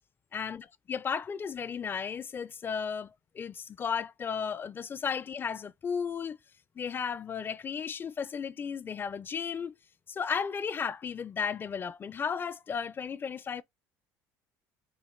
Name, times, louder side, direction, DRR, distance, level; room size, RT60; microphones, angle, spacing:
voice 1, 0.3-6.4 6.8-9.8 10.1-13.6, left 6 dB, 30° left, 0.4 m, -34 dB
5.6 x 2.5 x 3.1 m
supercardioid pair, 100°, 7 cm